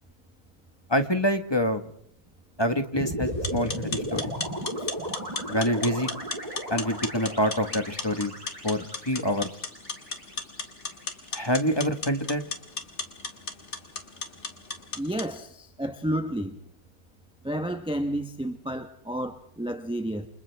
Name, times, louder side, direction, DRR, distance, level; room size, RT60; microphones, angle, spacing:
voice 1, 0.9-1.8 2.6-4.3 5.5-6.1 6.7-8.3 8.6-9.5 11.3-12.4, equal, 20° left, 1.4 m, -26 dB
sound 1, 2.9-11.2, right 1 dB, 25° right, 6.0 m, -36 dB
sound 2, 3.3-15.3, left 3 dB, 50° left, 2.4 m, -37 dB
voice 2, 15.0-16.5 17.4-20.3, right 1 dB, 5° right, 0.9 m, -31 dB
29.5 x 26.5 x 3.5 m
omnidirectional pair, 1.6 m